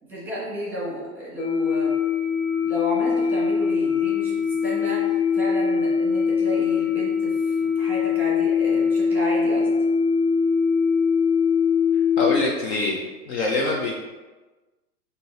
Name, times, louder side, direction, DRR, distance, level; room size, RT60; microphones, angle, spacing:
voice 1, 0.1-1.9 2.6-9.7, equal, 5° right, -7 dB, 1.3 m, -32 dB
sound 1, 1.4-12.4, left 6 dB, 70° left, 1.3 m, -22 dB
voice 2, 12.2-14.0, left 2 dB, 45° left, -1 dB, 0.6 m, -25 dB
3.7 x 2.7 x 4.3 m, 1.2 s
hypercardioid pair, 125°, 47 cm